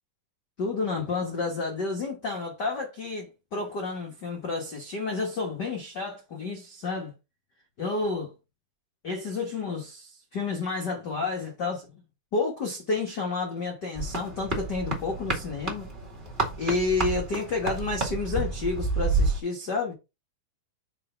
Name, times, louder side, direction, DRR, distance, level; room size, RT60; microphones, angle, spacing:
voice 1, 0.6-7.1 7.8-8.3 9.0-12.0 12.3-15.9 16.6-19.9, left 3 dB, 85° left, 0.9 m, -30 dB
sound 1, 14.0-19.4, right 3 dB, 25° right, 1.0 m, -30 dB
6.6 x 3.3 x 5.6 m
omnidirectional pair, 4.2 m